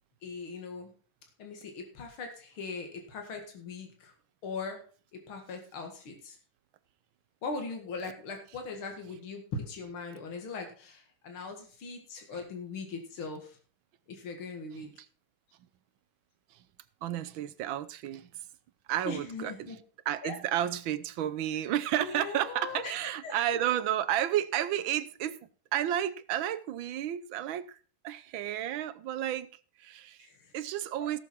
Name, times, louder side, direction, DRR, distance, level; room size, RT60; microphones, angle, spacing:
voice 1, 0.2-0.9 1.4-4.1 4.4-4.8 5.3-6.4 7.4-13.6 14.1-14.9 19.0-19.8 20.2-20.4 22.0-22.9 23.2-23.8 30.2-30.5 31.0-31.2, left 4 dB, 75° left, 2.8 m, -40 dB
voice 2, 17.0-18.3 18.9-19.5 20.1-25.4 25.7-27.8 28.0-29.5 29.8-30.2 30.5-31.2, right 11 dB, 75° right, 1.5 m, -31 dB
17.0 x 6.9 x 4.4 m
omnidirectional pair, 2.3 m